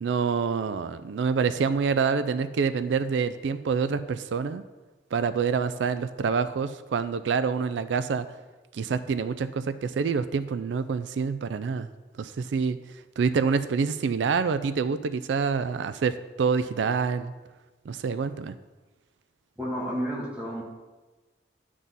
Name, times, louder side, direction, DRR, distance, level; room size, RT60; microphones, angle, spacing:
voice 1, 0.0-4.6 5.1-8.3 8.7-11.9 12.2-12.8 13.2-17.3 17.9-18.6, right 5 dB, 85° right, 13 dB, 0.4 m, -27 dB
voice 2, 19.6-20.6, equal, 10° right, -5 dB, 2.2 m, -31 dB
10.5 x 6.1 x 4.0 m, 1.2 s
head